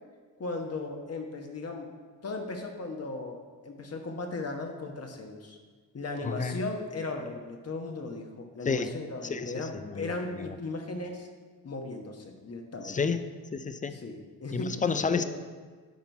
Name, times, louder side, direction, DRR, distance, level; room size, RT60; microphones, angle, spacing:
voice 1, 0.4-1.9 2.2-5.6 5.9-11.3 11.6-13.0 13.9-15.2, left 3 dB, 40° left, 3 dB, 1.2 m, -37 dB
voice 2, 6.2-6.5 8.6-9.0 9.2-10.6 12.8-13.2 13.5-14.0 14.5-15.2, left 5 dB, 20° left, 10 dB, 0.5 m, -31 dB
10.5 x 3.8 x 4.6 m, 1.5 s
supercardioid pair, 65°, 40 cm